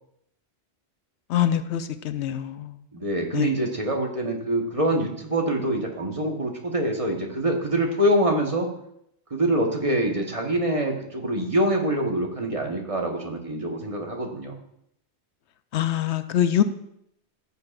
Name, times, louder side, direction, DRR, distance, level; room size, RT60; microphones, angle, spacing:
voice 1, 1.3-2.8 3.3-3.5 15.7-16.6, left 10 dB, 85° left, 10 dB, 0.9 m, -24 dB
voice 2, 2.9-8.7 9.3-14.6, right 1 dB, 30° right, 1 dB, 1.3 m, -25 dB
15.0 x 6.9 x 2.5 m, 0.74 s
omnidirectional pair, 1.1 m